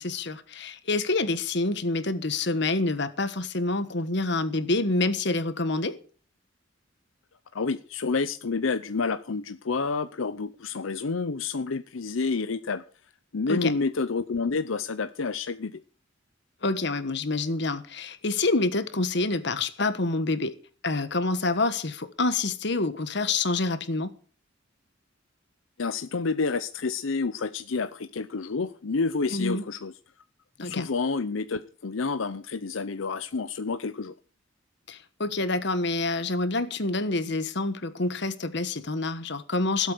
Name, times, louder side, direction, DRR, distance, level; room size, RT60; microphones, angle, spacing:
voice 1, 0.0-5.9 13.5-13.7 16.6-20.5 20.8-24.1 29.3-29.6 30.6-30.9 34.9-39.9, left 2 dB, 60° left, 1.4 m, -27 dB
voice 2, 7.5-12.8 13.3-15.8 25.8-29.9 30.6-34.1, left 4 dB, 85° left, 0.7 m, -29 dB
16.5 x 8.1 x 6.7 m
head